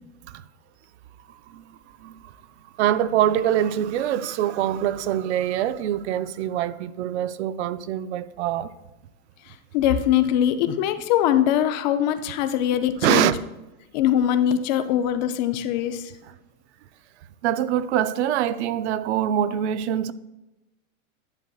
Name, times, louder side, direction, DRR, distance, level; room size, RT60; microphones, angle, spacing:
voice 1, 1.3-2.4 2.8-8.7 13.0-13.4 16.2-16.3 17.4-20.1, right 11 dB, 50° right, 0.4 m, -24 dB
voice 2, 9.7-13.3 13.9-16.1, left 10 dB, 35° left, 0.4 m, -22 dB
10.5 x 7.9 x 2.3 m
supercardioid pair, 150°, 44 cm